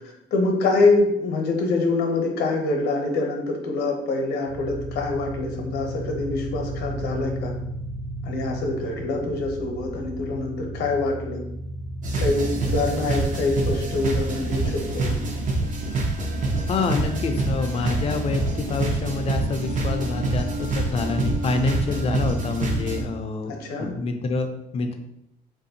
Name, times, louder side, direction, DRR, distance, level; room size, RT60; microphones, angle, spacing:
voice 1, 0.3-7.5 8.2-11.4 12.2-15.2 23.4-23.9, left 3 dB, 80° left, 2 dB, 0.7 m, -25 dB
sound 1, 4.5-16.1, right 1 dB, ahead, 0.7 m, -34 dB
sound 2, 12.0-23.0, right 2 dB, 50° right, 0.8 m, -26 dB
voice 2, 16.7-23.5 23.8-25.0, left 4 dB, 35° left, 6 dB, 0.4 m, -27 dB
3.4 x 2.6 x 2.7 m, 0.81 s
cardioid pair, 110°, 17 cm